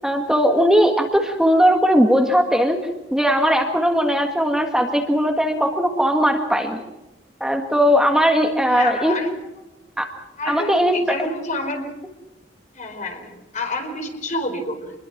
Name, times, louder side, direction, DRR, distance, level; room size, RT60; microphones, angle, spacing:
voice 1, 0.0-2.8 3.1-6.8 7.4-9.2 10.0-10.1 10.5-10.9, equal, 5° right, 3 dB, 1.7 m, -18 dB
voice 2, 8.7-9.3 10.4-11.9 12.7-15.0, left 2 dB, 45° left, 5 dB, 4.4 m, -28 dB
27.0 x 21.5 x 6.0 m, 0.99 s
head